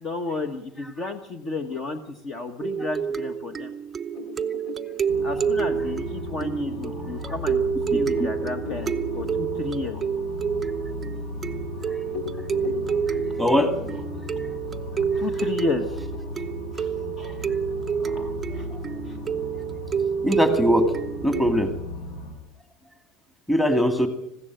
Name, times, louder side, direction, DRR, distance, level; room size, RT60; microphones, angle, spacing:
voice 1, 0.0-3.7 5.2-10.0 15.1-15.9 16.8-16.9 17.2-17.4 18.0-18.7 19.0-19.2, left 3 dB, 30° left, 7 dB, 1.3 m, -32 dB
sound 1, 2.6-21.8, right 7 dB, 15° right, 0.7 m, -28 dB
sound 2, 4.1-7.2 7.7-7.8 8.1-11.7 12.0-16.2, left 10 dB, 50° left, 2.4 m, -41 dB
sound 3, 5.1-22.3, left 2 dB, 85° left, 7.3 m, -37 dB
voice 2, 7.9-8.3 13.4-13.7 20.2-20.9 21.2-21.7 23.5-24.1, equal, 5° left, 7 dB, 2.1 m, -21 dB
20.5 x 15.5 x 9.0 m, 0.84 s
cardioid pair, 165°, 0 cm